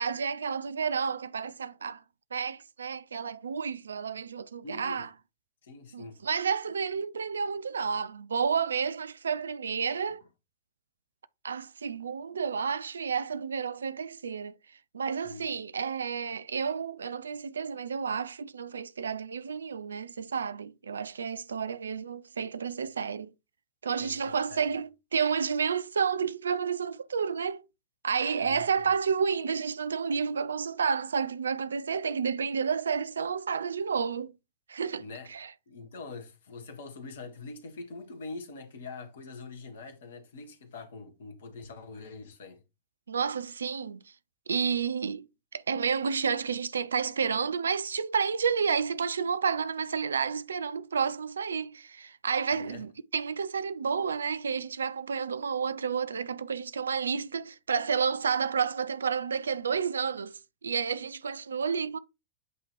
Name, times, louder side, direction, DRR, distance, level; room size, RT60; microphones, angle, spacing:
voice 1, 0.0-2.0 2.3-5.1 5.9-10.2 11.4-14.5 14.9-23.3 23.8-27.6 28.0-34.3 34.7-35.5 43.1-44.0 44.5-45.2 45.5-62.0, right 6 dB, 70° right, 0.3 m, -30 dB
voice 2, 4.6-5.1 5.6-6.2 15.2-15.4 24.0-24.6 28.4-28.7 35.0-35.3 35.7-42.6 52.5-52.8, left 3 dB, 65° left, 1.4 m, -44 dB
8.1 x 2.9 x 4.4 m
figure-of-eight pair, 90°, 0 cm